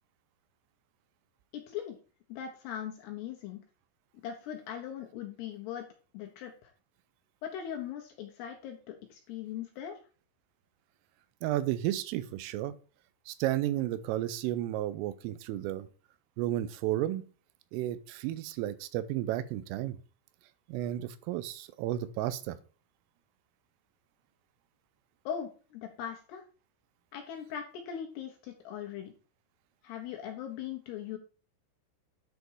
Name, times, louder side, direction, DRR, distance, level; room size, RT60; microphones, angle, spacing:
voice 1, 1.5-2.0 2.3-3.6 4.2-5.9 6.1-6.7 7.4-10.0 25.3-26.4 27.1-29.1 29.8-31.2, left 9 dB, 75° left, 3 dB, 2.5 m, -40 dB
voice 2, 11.4-12.8 13.3-15.9 16.4-17.2 17.7-20.0 20.7-22.6, right 13 dB, 90° right, 14 dB, 3.3 m, -32 dB
9.7 x 4.4 x 4.6 m, 0.36 s
omnidirectional pair, 5.7 m